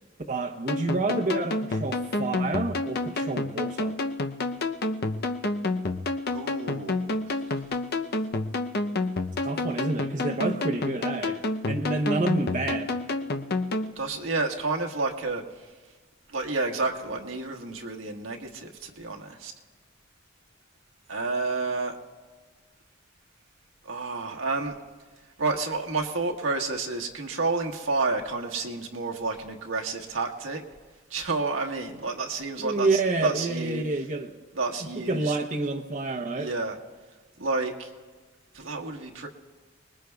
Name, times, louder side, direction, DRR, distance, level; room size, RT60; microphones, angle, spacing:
voice 1, 0.3-4.0 9.4-13.0 32.6-34.3 34.9-36.5, right 3 dB, 40° right, 4 dB, 0.8 m, -29 dB
sound 1, 0.7-13.9, left 2 dB, 55° left, 0.6 m, -29 dB
voice 2, 6.3-7.2 14.0-15.4 16.3-19.5 21.1-21.9 23.8-24.7 25.4-30.6 31.1-33.8 34.5-35.3 36.4-36.7 37.4-37.9 38.5-39.3, right 3 dB, 85° right, 2 dB, 1.4 m, -30 dB
29.0 x 20.5 x 2.3 m, 1.4 s
head